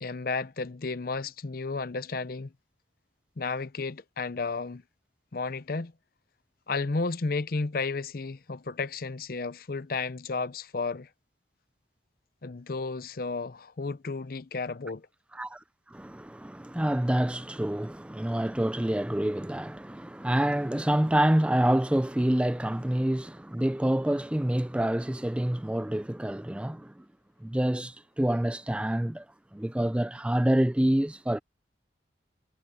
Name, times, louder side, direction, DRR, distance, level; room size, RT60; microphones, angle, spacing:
voice 1, 0.0-2.5 3.4-4.8 5.3-5.9 6.7-11.1 12.4-15.1, left 4 dB, 55° left, 0.7 m, -32 dB
voice 2, 15.9-27.0 27.4-29.2 29.5-31.4, right 1 dB, 5° right, 0.3 m, -27 dB
head